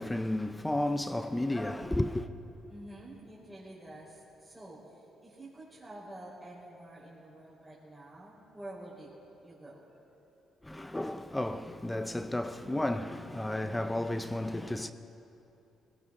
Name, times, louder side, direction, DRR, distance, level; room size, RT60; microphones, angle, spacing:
voice 1, 0.0-2.3 10.6-14.9, left 1 dB, 10° left, 0.6 m, -32 dB
voice 2, 2.7-9.1 9.4-9.9, right 1 dB, 10° right, 4.3 m, -48 dB
19.5 x 17.0 x 3.8 m
cardioid pair, 90°, 0 cm